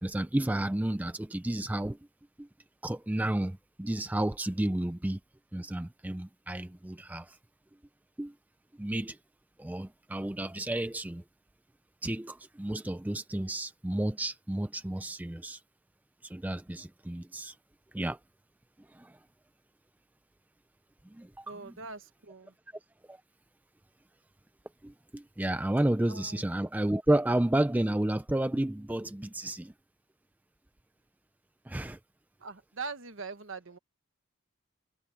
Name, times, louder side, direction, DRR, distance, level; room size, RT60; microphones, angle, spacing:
voice 1, 0.0-2.0 2.4-2.5 2.8-5.2 5.5-7.4 8.2-8.3 8.8-9.2 9.6-11.2 12.0-15.6 16.2-17.6 17.9-18.2 18.8-19.2 21.0-21.8 23.1-23.2 24.8-29.7 31.7-32.0, right 1 dB, 5° right, 0.3 m, -31 dB
voice 2, 21.5-22.5 26.1-26.4 32.4-33.8, right 4 dB, 60° right, 1.3 m, -42 dB
head